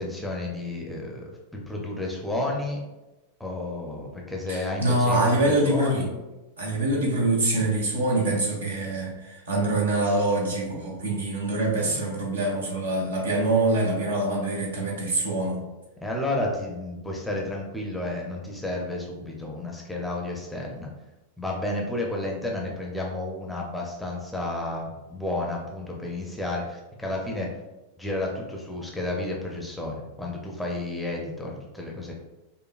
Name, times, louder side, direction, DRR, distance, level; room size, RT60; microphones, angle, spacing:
voice 1, 0.0-2.8 3.4-6.1 16.0-20.9 21.4-27.5 28.0-32.1, left 2 dB, 5° left, -2 dB, 0.6 m, -31 dB
voice 2, 4.5-6.1 6.6-15.6, right 2 dB, 70° right, -1 dB, 0.9 m, -25 dB
5.1 x 2.2 x 2.4 m, 1.1 s
figure-of-eight pair, 90°, 0 cm